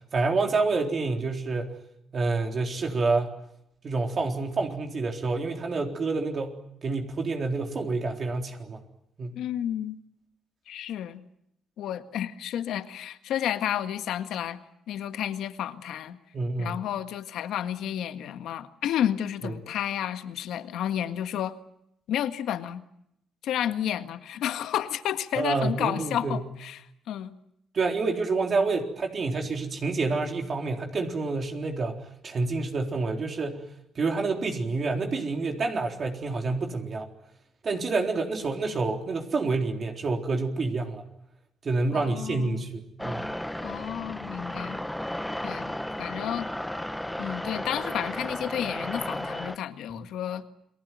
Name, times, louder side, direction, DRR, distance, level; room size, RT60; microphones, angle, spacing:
voice 1, 0.1-1.7 2.1-3.3 3.8-8.8 9.2-9.4 16.3-16.8 19.4-19.5 25.4-26.4 27.7-33.6 34.0-37.1 37.6-41.1 41.6-43.3, right 3 dB, 45° right, 3 dB, 3.9 m, -28 dB
voice 2, 9.3-10.0 10.7-11.2 11.8-14.6 14.9-16.2 16.6-21.6 22.1-22.8 23.4-27.4 41.9-42.7 43.6-44.8 45.4-45.7 46.0-46.5 47.2-50.5, left 10 dB, 80° left, 9 dB, 1.7 m, -31 dB
sound 1, 43.0-49.6, left 1 dB, 5° left, 1.0 m, -34 dB
29.0 x 20.0 x 9.3 m, 0.78 s
cardioid pair, 90°, 0 cm